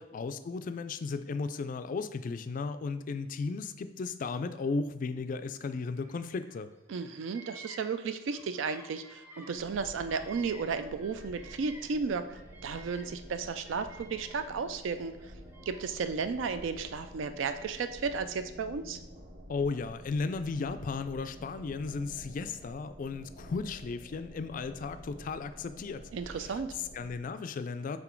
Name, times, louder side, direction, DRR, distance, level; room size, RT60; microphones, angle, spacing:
voice 1, 0.0-6.7 19.5-28.0, left 4 dB, 45° left, 11 dB, 0.3 m, -35 dB
Bird vocalization bird call bird song, 5.9-6.6 6.9-12.0 12.3-14.7 15.1-16.1 16.8-17.9, right 2 dB, 10° right, 0.7 m, -54 dB
voice 2, 6.9-15.1 15.7-19.0 26.1-26.7, right 5 dB, 75° right, 10 dB, 0.4 m, -34 dB
sound 1, 9.5-27.1, equal, 45° right, 0.7 m, -50 dB
6.0 x 3.9 x 4.5 m, 1.0 s
head